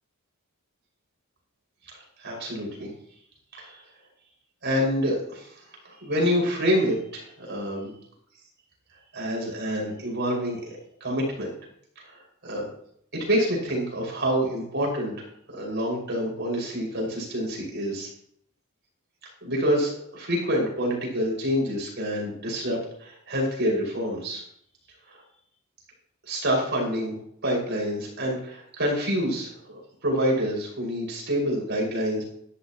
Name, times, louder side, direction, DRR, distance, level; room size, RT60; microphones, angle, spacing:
voice 1, 1.9-2.9 3.5-3.8 4.6-5.5 5.8-7.9 9.1-11.5 12.0-12.6 13.1-18.1 19.4-24.4 25.1-25.2 26.3-27.2 27.4-32.2, equal, 55° right, -2 dB, 5.9 m, -27 dB
13.5 x 12.5 x 3.1 m, 0.66 s
head